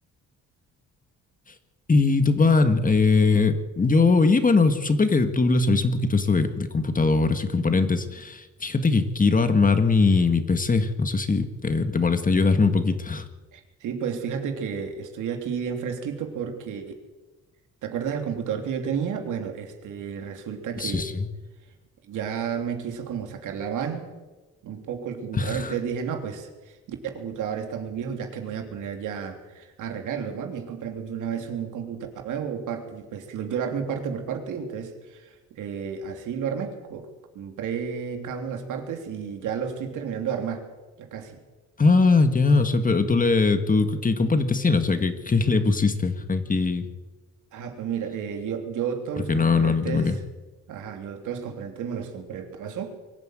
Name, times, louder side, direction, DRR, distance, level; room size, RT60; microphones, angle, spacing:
voice 1, 1.9-13.3 20.8-21.3 25.3-25.7 41.8-46.8 49.3-50.2, left 4 dB, 25° left, 9 dB, 1.9 m, -21 dB
voice 2, 13.5-16.9 17.8-21.1 22.1-24.1 24.6-37.1 37.3-40.7 41.0-41.4 47.5-50.2 50.7-53.0, right 7 dB, 80° right, 4 dB, 3.2 m, -32 dB
23.0 x 12.5 x 9.2 m, 1.2 s
cardioid pair, 90°, 30 cm